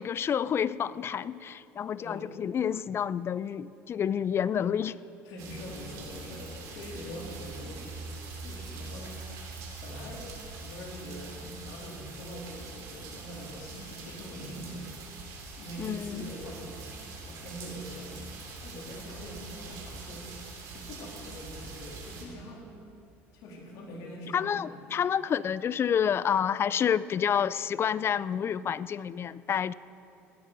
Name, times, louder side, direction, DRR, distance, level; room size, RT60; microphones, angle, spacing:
voice 1, 0.0-5.0 15.8-16.3 24.3-29.7, left 8 dB, 40° left, 18 dB, 0.4 m, -29 dB
voice 2, 2.0-2.3 4.9-5.0 5.2-8.0 8.4-14.9 15.6-16.9 17.2-18.3 18.6-20.3 20.7-22.7 23.3-24.8, equal, 70° left, -2 dB, 3.2 m, -43 dB
sound 1, 5.4-22.2, right 3 dB, 65° right, 3.1 m, -43 dB
18.0 x 11.0 x 3.9 m, 2.6 s
hypercardioid pair, 75°, 7 cm